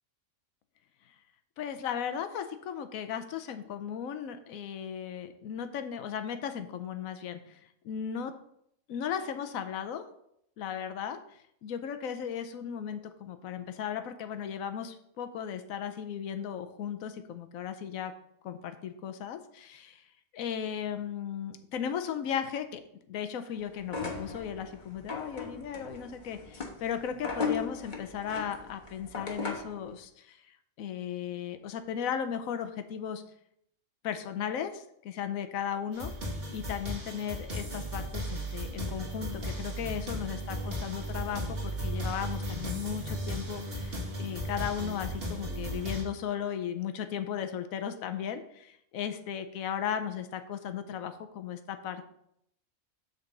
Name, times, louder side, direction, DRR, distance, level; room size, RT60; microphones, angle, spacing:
voice 1, 1.6-7.6 7.8-8.3 8.9-10.0 10.6-11.2 11.6-18.1 18.4-20.0 20.3-22.8 23.1-33.2 34.0-36.1 36.5-52.1, left 8 dB, 80° left, 9 dB, 1.1 m, -36 dB
sound 1, 23.8-29.8, left 4 dB, 35° left, 1.3 m, -37 dB
sound 2, 35.9-46.0, equal, 45° right, 1.9 m, -36 dB
8.1 x 4.1 x 6.6 m, 0.73 s
omnidirectional pair, 1.4 m